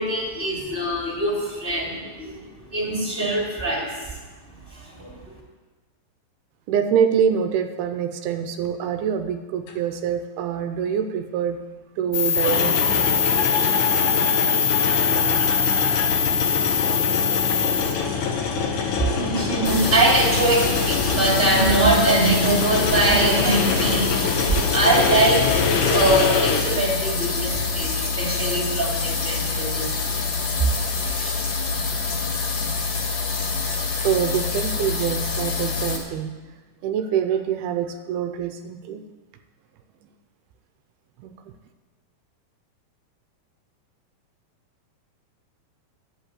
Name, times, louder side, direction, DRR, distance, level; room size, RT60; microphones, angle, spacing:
voice 1, 0.0-2.4 2.7-3.9 5.0-5.1 19.1-24.1 24.7-29.9 30.7-31.3, right 2 dB, 15° right, -3 dB, 2.5 m, -22 dB
voice 2, 6.7-11.6 12.0-12.8 34.0-36.3 36.8-39.0 41.2-41.3, right 8 dB, 80° right, 7 dB, 2.7 m, -25 dB
sound 1, 9.7-9.8 12.3-26.6, left 5 dB, 90° left, 3.5 m, -25 dB
sound 2, 12.1-17.9, left 6 dB, 75° left, 3.1 m, -22 dB
sound 3, 19.6-36.0, left 4 dB, 50° left, 2.6 m, -26 dB
11.0 x 8.4 x 8.3 m, 1.3 s
omnidirectional pair, 4.5 m